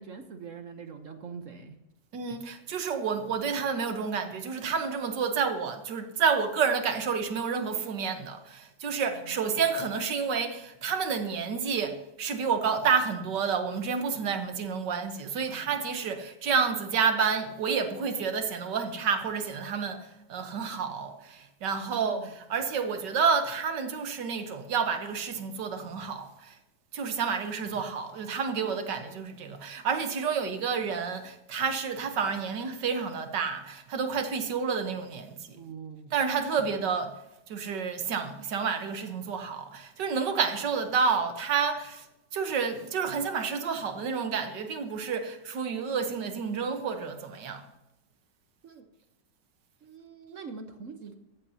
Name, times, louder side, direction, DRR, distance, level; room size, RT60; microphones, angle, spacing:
voice 1, 0.0-1.8 9.1-9.6 15.5-15.8 21.8-22.3 35.5-36.1 48.6-48.9 49.8-51.1, right 5 dB, 55° right, 1.2 m, -44 dB
voice 2, 2.1-26.6 26.9-35.6 36.1-37.2 37.5-42.0 42.3-47.6, right 6 dB, 85° right, 1.7 m, -29 dB
14.5 x 14.0 x 2.8 m
omnidirectional pair, 1.8 m